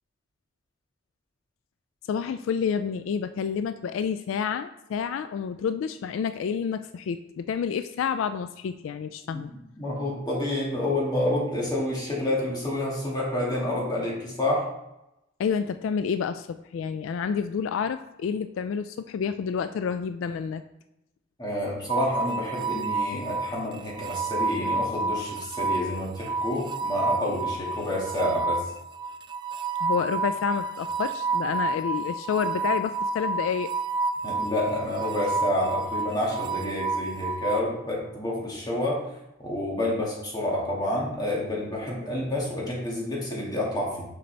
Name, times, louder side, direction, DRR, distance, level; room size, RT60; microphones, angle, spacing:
voice 1, 2.1-9.5 15.4-20.6 29.8-33.7, left 6 dB, 80° left, 11 dB, 0.3 m, -29 dB
voice 2, 9.3-14.6 21.4-28.6 34.2-39.0 39.4-44.1, left 1 dB, 20° left, -4 dB, 2.0 m, -29 dB
sound 1, 21.9-37.6, right 3 dB, 25° right, 0.3 m, -29 dB
6.4 x 5.4 x 3.3 m, 0.89 s
head